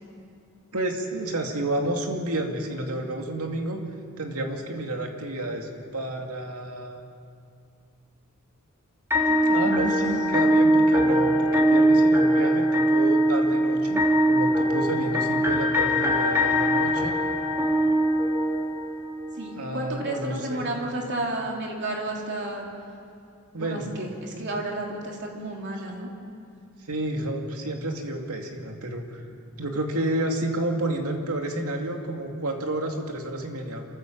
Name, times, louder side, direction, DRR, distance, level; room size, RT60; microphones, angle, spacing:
voice 1, 0.7-3.8 4.2-7.0 9.4-17.1 19.6-20.7 23.5-23.9 24.3-24.5 26.9-29.2 29.6-33.9, right 1 dB, 85° right, 3 dB, 2.4 m, -30 dB
sound 1, 9.1-19.1, equal, 10° right, 2.6 m, -21 dB
voice 2, 9.3-9.8 15.0-15.3 19.4-22.7 23.6-26.1, right 1 dB, 55° right, 0 dB, 3.3 m, -32 dB
27.5 x 14.5 x 7.6 m, 2.5 s
head